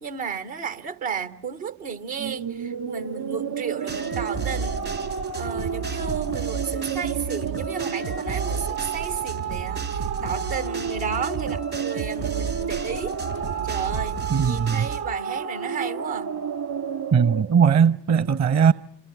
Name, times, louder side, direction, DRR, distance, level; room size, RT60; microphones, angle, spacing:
voice 1, 0.0-4.9 5.3-13.2 13.6-16.4, right 6 dB, 70° right, 1.8 m, -33 dB
sound 1, 2.2-17.4, right 6 dB, 55° right, 2.4 m, -31 dB
sound 2, 3.8-15.0, right 5 dB, 90° right, 4.8 m, -33 dB
voice 2, 14.3-14.9 17.1-18.7, right 7 dB, 40° right, 1.0 m, -19 dB
28.0 x 27.5 x 6.1 m
figure-of-eight pair, 45°, 44 cm